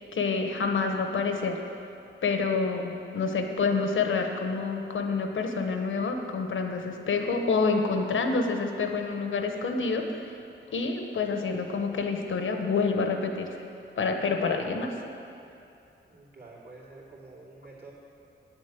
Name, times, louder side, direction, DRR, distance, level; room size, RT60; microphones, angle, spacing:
voice 1, 0.1-1.6 2.2-10.2 10.7-13.5 14.0-14.9, left 4 dB, 75° left, 4 dB, 1.1 m, -27 dB
voice 2, 16.1-17.9, right 3 dB, 50° right, -7 dB, 2.9 m, -48 dB
9.8 x 7.2 x 8.2 m, 2.8 s
wide cardioid pair, 165°, 20 cm